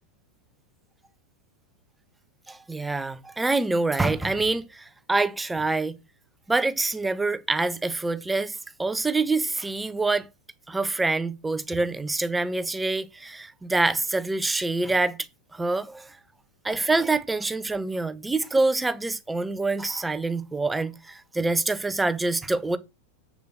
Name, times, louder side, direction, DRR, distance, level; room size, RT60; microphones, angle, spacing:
voice 1, 2.5-6.0 6.5-10.3 10.7-15.2 15.5-16.1 16.6-22.8, right 3 dB, 10° right, 1.2 m, -26 dB
7.9 x 7.1 x 7.7 m
figure-of-eight pair, 90°, 0 cm